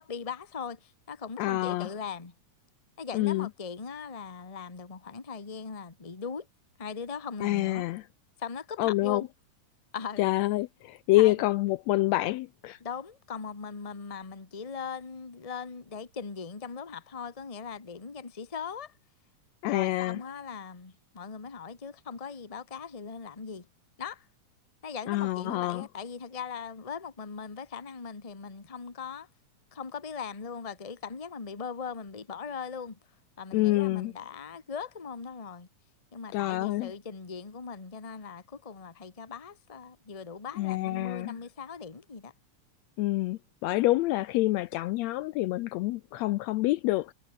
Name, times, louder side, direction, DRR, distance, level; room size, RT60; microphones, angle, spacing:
voice 1, 0.0-2.3 3.0-6.5 6.8-7.9 8.4-9.3 9.9-10.3 11.1-11.5 12.8-18.9 19.6-23.7 24.0-24.3 24.8-29.3 29.7-33.0 33.4-35.7 36.1-42.3, left 6 dB, 20° left, 1.1 m, -39 dB
voice 2, 1.4-1.9 3.1-3.5 7.4-8.0 8.8-9.3 10.2-12.8 19.6-20.2 25.1-25.9 33.5-34.1 36.3-36.9 40.6-41.4 43.0-47.1, left 18 dB, 80° left, 1.7 m, -27 dB
omnidirectional pair, 3.4 m